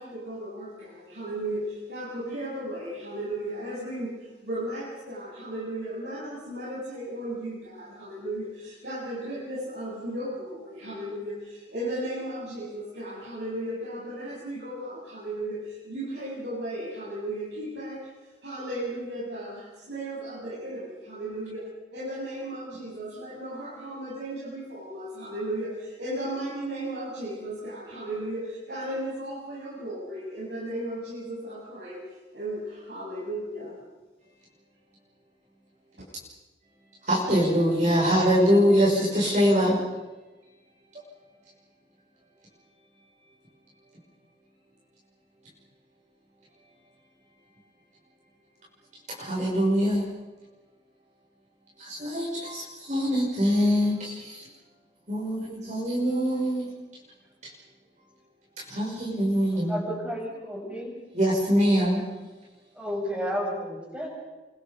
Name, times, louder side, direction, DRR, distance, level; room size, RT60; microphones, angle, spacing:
voice 1, 0.0-18.1 18.4-32.0 32.3-33.8, right 1 dB, 70° right, -7 dB, 7.8 m, -35 dB
voice 2, 37.1-39.8 49.2-50.0 51.8-54.4 55.1-56.7 58.7-59.7 61.1-62.0, equal, 40° right, -5 dB, 6.5 m, -23 dB
voice 3, 59.5-60.9 62.7-64.1, equal, 5° right, -2 dB, 7.8 m, -32 dB
29.0 x 25.5 x 5.4 m, 1.1 s
head